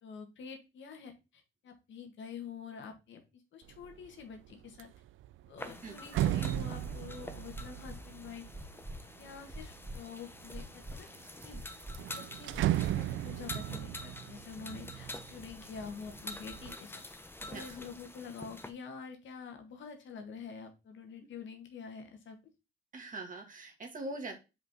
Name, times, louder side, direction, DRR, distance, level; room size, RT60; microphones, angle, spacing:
voice 1, 0.0-4.9 5.5-8.5 9.2-11.1 11.4-11.6 12.1-12.5 12.8-17.0 17.5-22.4, left 6 dB, 70° left, 5 dB, 1.7 m, -47 dB
sound 1, 3.7-4.1 4.5-9.8 10.4-11.1 11.4-11.5 11.8-15.7 16.1-16.7, right 13 dB, 75° right, 0.4 m, -36 dB
sound 2, 5.6-18.7, left 1 dB, 10° left, 0.8 m, -48 dB
sound 3, 6.8-7.0 7.5-8.0 8.5-9.0 9.5-10.0 10.5-11.0 11.5-12.0 12.5-13.0 13.5-13.6, right 2 dB, 5° right, 2.7 m, -44 dB
voice 2, 17.4-17.8 22.9-24.4, right 2 dB, 40° right, 3 dB, 2.0 m, -42 dB
5.2 x 5.0 x 3.6 m, 0.27 s
cardioid pair, 90°, 20 cm